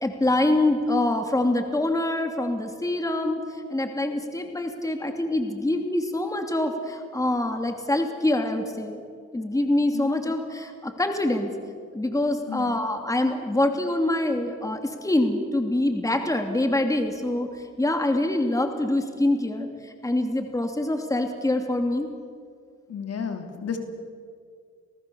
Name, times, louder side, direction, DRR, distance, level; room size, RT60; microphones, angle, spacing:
voice 1, 0.0-3.4 3.7-9.0 9.3-11.5 11.9-17.5 17.8-19.7 20.0-22.1, left 1 dB, 10° left, 4 dB, 2.8 m, -25 dB
voice 2, 22.9-23.8, left 7 dB, 55° left, 5 dB, 3.1 m, -32 dB
28.0 x 18.0 x 7.0 m, 2.1 s
cardioid pair, 90°, 30 cm